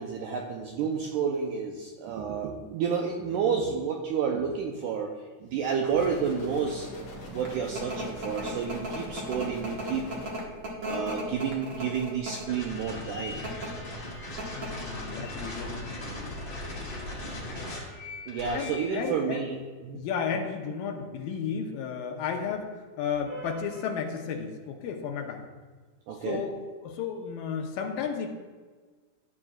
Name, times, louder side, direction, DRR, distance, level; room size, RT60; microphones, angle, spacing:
voice 1, 0.0-5.1 5.4-6.9 7.3-10.1 10.8-13.4 18.3-20.0 23.3-23.5 26.1-26.4, right 6 dB, 85° right, 1 dB, 1.8 m, -30 dB
sound 1, 5.9-10.3, equal, 55° left, 3.1 m, -42 dB
sound 2, 7.1-12.6 13.3-13.7 14.1-14.2 14.4-14.9, right 1 dB, 55° right, 1.3 m, -36 dB
sound 3, 12.5-19.1, left 1 dB, 25° left, 2.3 m, -38 dB
voice 2, 14.6-16.3 18.5-19.5 19.9-25.4 26.2-28.3, left 6 dB, 80° left, 3 dB, 2.5 m, -33 dB
13.5 x 8.5 x 2.4 m, 1.4 s
omnidirectional pair, 4.3 m